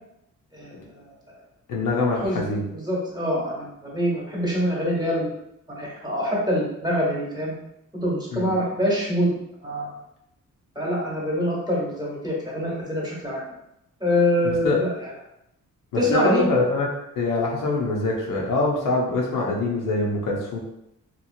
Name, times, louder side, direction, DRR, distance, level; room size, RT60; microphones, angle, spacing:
voice 1, 0.5-1.0 2.2-5.3 5.7-7.5 7.9-9.4 9.6-9.9 10.7-13.4 14.0-15.1 15.9-16.5, left 1 dB, 15° right, -5 dB, 0.9 m, -25 dB
voice 2, 1.7-2.6 8.3-8.5 14.6-14.8 16.1-16.9 17.2-20.6, left 2 dB, 90° left, -2 dB, 0.8 m, -24 dB
2.9 x 2.4 x 2.6 m, 0.82 s
cardioid pair, 105°, 31 cm